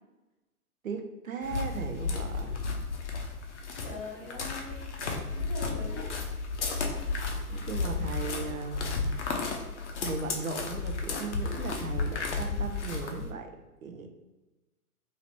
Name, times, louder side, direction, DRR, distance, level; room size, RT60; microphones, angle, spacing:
voice 1, 0.8-2.7 7.5-9.0 10.0-13.6 13.8-14.1, right 4 dB, 65° right, 5 dB, 0.7 m, -37 dB
sound 1, 1.4-13.3, left 4 dB, 50° left, 0.7 m, -33 dB
voice 2, 3.8-6.1 6.6-6.7, left 2 dB, 20° left, -4 dB, 1.3 m, -42 dB
2.9 x 2.8 x 3.3 m, 1.1 s
figure-of-eight pair, 115°, 44 cm